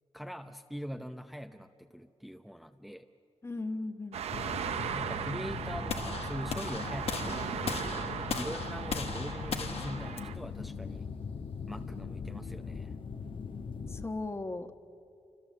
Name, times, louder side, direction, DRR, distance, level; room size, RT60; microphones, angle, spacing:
voice 1, 0.1-3.1 5.0-11.1 11.7-12.9, equal, ahead, 6 dB, 0.8 m, -43 dB
voice 2, 3.4-4.2 13.9-14.7, left 2 dB, 25° left, 8 dB, 1.3 m, -37 dB
sound 1, 4.1-10.4, right 8 dB, 85° right, 1.0 m, -38 dB
sound 2, 4.3-14.0, left 5 dB, 55° left, 1.3 m, -40 dB
sound 3, 5.9-12.0, left 6 dB, 70° left, 1.5 m, -39 dB
28.5 x 26.0 x 7.6 m, 2.6 s
cardioid pair, 95°, 10 cm